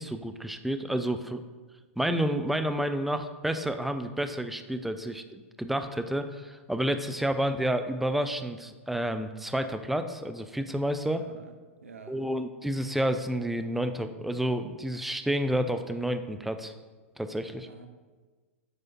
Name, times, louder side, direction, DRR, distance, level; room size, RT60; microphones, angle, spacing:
voice 1, 0.0-1.4 2.0-11.2 12.1-16.7 17.2-17.7, right 1 dB, 5° right, 8 dB, 0.3 m, -30 dB
voice 2, 11.0-11.6 11.8-12.2 17.6-17.9, right 3 dB, 75° right, 7 dB, 0.7 m, -47 dB
8.0 x 4.8 x 2.9 m, 1.4 s
figure-of-eight pair, 100°, 7 cm